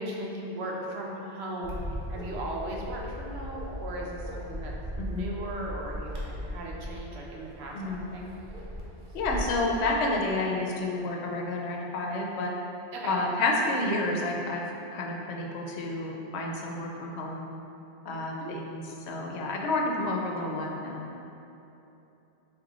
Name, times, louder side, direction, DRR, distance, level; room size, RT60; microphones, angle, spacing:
voice 1, 0.0-8.3 12.9-13.1 18.4-18.7, right 1 dB, 85° right, -2 dB, 0.9 m, -37 dB
Bark, 1.6-9.6, left 1 dB, 55° right, 0.8 m, -38 dB
voice 2, 9.1-12.5 13.0-14.7 14.9-17.4 18.0-21.1, left 2 dB, 85° left, 0 dB, 0.8 m, -30 dB
3.6 x 2.8 x 3.9 m, 2.9 s
omnidirectional pair, 1.1 m